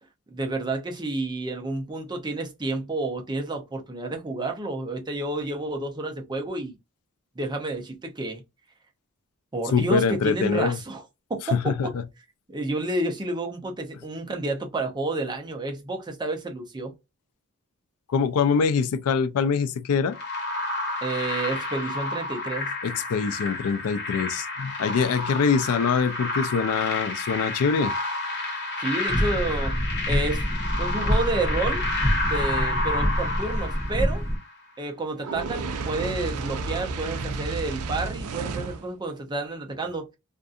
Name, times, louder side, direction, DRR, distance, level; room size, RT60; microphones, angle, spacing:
voice 1, 0.3-6.8 7.4-8.4 9.5-11.0 11.3-11.9 12.5-16.9 21.0-22.7 28.8-29.7 30.1-30.5 30.8-31.8 32.3-34.2 34.8-40.1, right 2 dB, 20° right, 0.6 m, -30 dB
voice 2, 9.7-10.8 11.5-12.0 18.1-20.2 22.8-27.9, left 5 dB, 70° left, 0.4 m, -24 dB
sound 1, 20.1-34.5, left 2 dB, 50° left, 1.1 m, -30 dB
sound 2, 29.1-34.4, equal, 15° left, 0.8 m, -26 dB
Fire, 35.2-38.9, right 4 dB, 75° right, 0.5 m, -31 dB
2.5 x 2.5 x 2.3 m
head